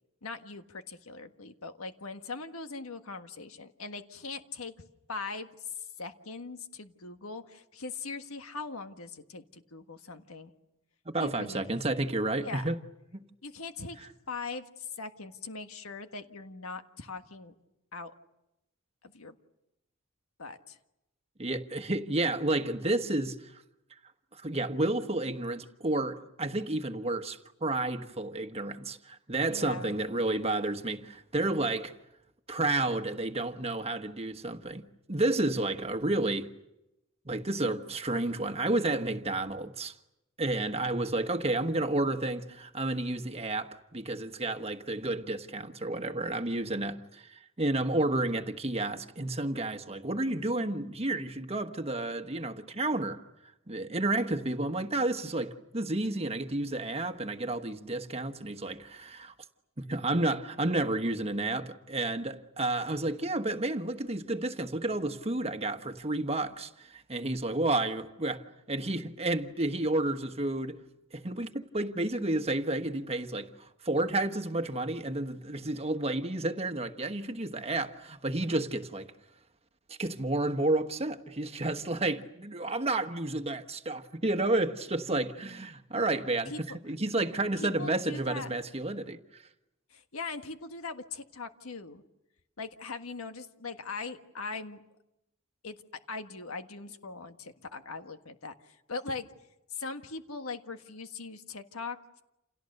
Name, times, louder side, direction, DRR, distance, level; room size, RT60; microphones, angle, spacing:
voice 1, 0.2-4.7 5.1-10.5 11.2-11.8 12.4-12.7 13.4-14.0 14.3-17.5 17.9-18.1 19.0-19.3 20.4-20.8 29.5-30.0 86.5-86.6 87.6-88.6 89.9-92.0 92.6-94.8 95.6-95.8 96.1-99.3 99.7-102.2, left 4 dB, 80° left, 1.6 m, -40 dB
voice 2, 11.1-12.8 13.1-13.2 21.4-23.6 24.3-31.9 32.5-36.5 37.2-39.9 40.4-53.2 53.7-59.3 59.8-70.8 71.1-79.1 79.9-86.5 86.8-89.4, right 2 dB, 30° right, 1.3 m, -31 dB
29.5 x 28.5 x 6.7 m
head